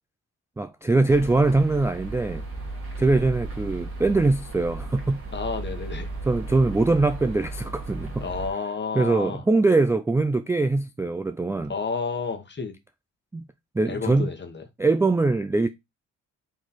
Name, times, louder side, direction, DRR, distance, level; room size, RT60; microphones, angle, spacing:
voice 1, 0.6-2.4 3.0-5.2 6.3-8.2 9.0-11.7 13.3-13.5 13.7-14.3 14.8-15.7, right 3 dB, 10° right, 0.3 m, -22 dB
sound 1, 1.1-8.5, right 2 dB, 40° right, 2.0 m, -35 dB
voice 2, 5.3-6.1 8.2-9.4 11.7-12.8 13.8-14.6, left 5 dB, 35° left, 1.2 m, -31 dB
4.4 x 3.0 x 4.0 m
supercardioid pair, 50°, 33 cm